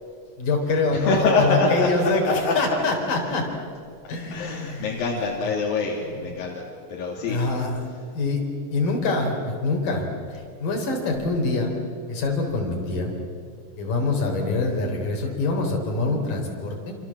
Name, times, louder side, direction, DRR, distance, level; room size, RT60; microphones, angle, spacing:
voice 1, 0.4-2.2 2.6-3.5 4.1-5.0 7.3-7.7 8.1-8.4 8.7-10.1 10.3-11.7 12.1-13.1 13.8-17.0, left 3 dB, 70° left, 1 dB, 5.6 m, -25 dB
voice 2, 0.9-1.9 2.3-2.6 3.1-3.2 4.3-7.4 7.8-8.1, left 3 dB, 90° left, -2 dB, 4.5 m, -25 dB
27.5 x 27.0 x 7.4 m, 2.3 s
omnidirectional pair, 4.0 m